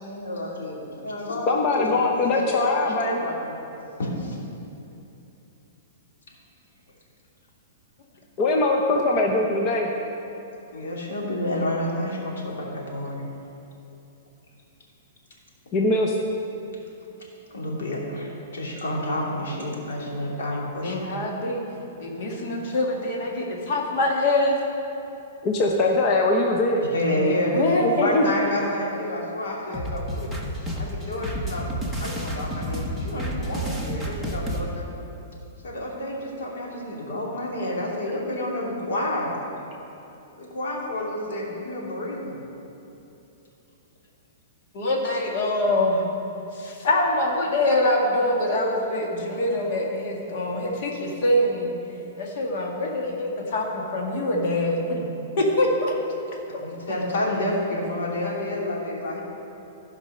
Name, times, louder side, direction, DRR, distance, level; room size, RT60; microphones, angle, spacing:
voice 1, 0.0-2.6 2.9-3.6 4.0-4.4 10.7-13.2 17.5-21.2 26.9-30.3 30.7-31.7 32.0-34.9 35.6-39.4 40.4-42.4 56.6-59.2, left 1 dB, 85° left, -3 dB, 2.8 m, -29 dB
voice 2, 1.5-3.3 8.4-9.9 15.7-16.2 25.4-26.9 27.8-28.2, left 2 dB, 30° left, 0 dB, 0.8 m, -22 dB
voice 3, 20.8-21.6 22.0-24.6 27.1-27.9 44.7-46.0 46.5-51.7 52.2-55.0 55.4-55.9, left 1 dB, 50° left, -1 dB, 2.0 m, -24 dB
sound 1, 29.7-34.6, equal, 5° left, 1.1 m, -30 dB
15.0 x 5.3 x 5.5 m, 2.8 s
hypercardioid pair, 155°, 0 cm